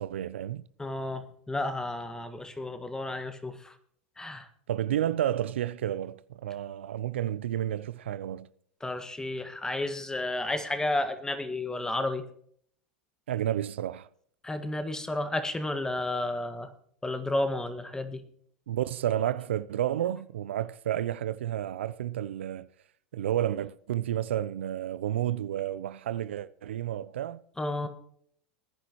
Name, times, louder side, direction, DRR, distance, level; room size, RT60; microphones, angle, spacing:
voice 1, 0.0-0.6 4.7-8.5 13.3-14.1 18.7-22.7 23.1-27.4, right 11 dB, 85° right, 0.6 m, -31 dB
voice 2, 0.8-3.7 4.2-4.5 8.8-12.2 14.4-16.7 17.0-18.2 27.6-27.9, left 2 dB, 10° left, 1.7 m, -32 dB
20.0 x 10.0 x 3.0 m
hypercardioid pair, 100°, 6 cm